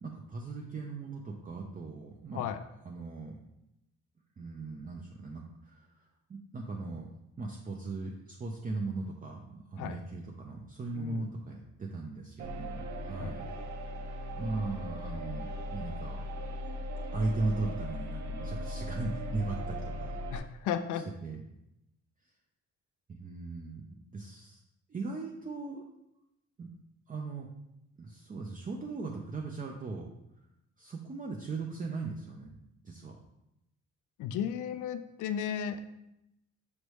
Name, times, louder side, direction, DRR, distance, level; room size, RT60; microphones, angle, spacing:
voice 1, 0.0-2.5 2.8-3.4 4.4-7.1 7.4-13.5 14.4-16.2 17.1-20.2 21.2-21.4 23.1-24.6 24.9-25.8 26.6-26.7 27.1-27.5 28.0-30.1 30.8-32.6 32.8-33.2, right 3 dB, 30° right, 0 dB, 0.5 m, -38 dB
voice 2, 10.9-11.3 13.1-13.3 20.3-21.0 34.2-35.8, left 9 dB, 80° left, 10 dB, 0.4 m, -34 dB
sound 1, 12.4-20.4, equal, 70° right, 0.7 m, -38 dB
5.3 x 3.2 x 3.1 m, 0.85 s
cardioid pair, 90°, 30 cm